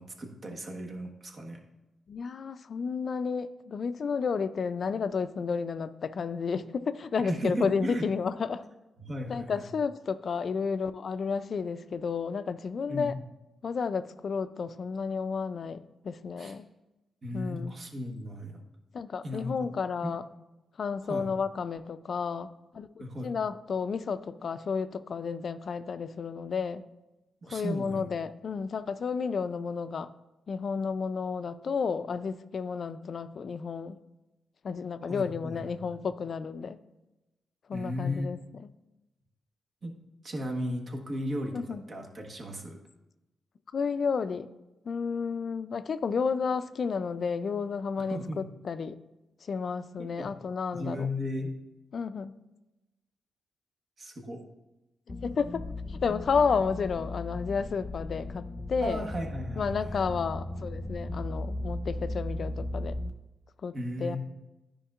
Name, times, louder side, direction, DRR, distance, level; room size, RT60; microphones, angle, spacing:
voice 1, 0.0-1.6 7.2-8.1 9.0-9.7 12.9-13.2 16.4-16.5 17.2-18.6 19.2-19.7 20.0-20.1 21.1-21.3 23.0-23.3 27.4-28.1 35.0-35.9 37.7-38.3 39.8-39.9 40.2-42.8 48.1-48.4 50.0-50.3 50.7-51.5 54.0-54.4 58.8-60.1 63.7-64.2, equal, 50° right, 2 dB, 1.2 m, -35 dB
voice 2, 2.1-8.6 9.3-13.1 13.6-16.7 17.3-17.7 18.9-20.2 20.8-22.5 22.7-26.8 27.5-30.1 30.5-34.0 34.6-36.8 37.7-38.4 41.5-41.8 43.7-44.5 44.9-49.0 49.4-51.1 51.9-52.4 55.1-59.1 59.6-63.0 63.6-64.2, left 5 dB, 60° left, 12 dB, 0.3 m, -32 dB
sound 1, 55.1-63.1, left 1 dB, 25° left, 0.8 m, -36 dB
10.0 x 5.1 x 2.4 m, 1.0 s
supercardioid pair, 55°, 0 cm